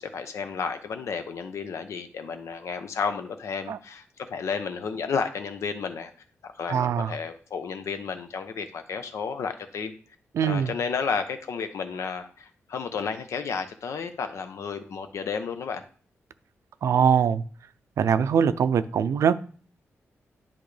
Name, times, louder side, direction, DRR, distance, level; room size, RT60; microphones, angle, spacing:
voice 1, 0.0-4.0 4.3-6.1 6.4-9.9 10.4-15.8, left 5 dB, 80° left, 8 dB, 0.8 m, -32 dB
voice 2, 6.7-7.1 10.3-10.7 16.8-17.4 18.0-19.4, right 7 dB, 85° right, 14 dB, 0.4 m, -22 dB
10.0 x 3.5 x 3.3 m, 0.43 s
wide cardioid pair, 135°, 5 cm